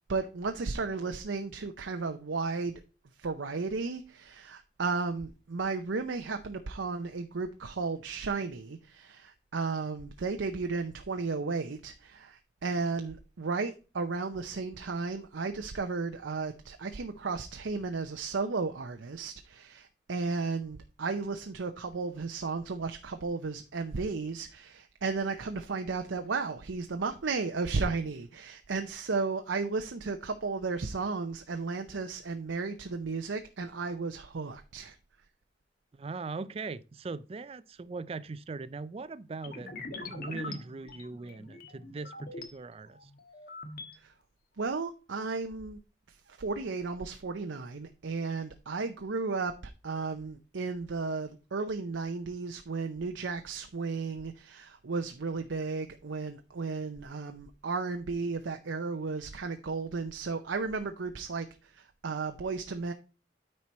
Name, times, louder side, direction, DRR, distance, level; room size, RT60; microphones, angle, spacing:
voice 1, 0.1-2.8 3.2-35.0 44.0-44.1 44.6-45.8 46.1-49.5 49.8-62.9, right 4 dB, 90° right, 0.6 m, -34 dB
voice 2, 35.9-39.7 40.1-43.1, right 4 dB, 30° right, 0.4 m, -40 dB
sound 1, 39.4-42.5 43.0-43.9, left 2 dB, 50° left, 1.3 m, -43 dB
9.4 x 4.5 x 4.1 m
head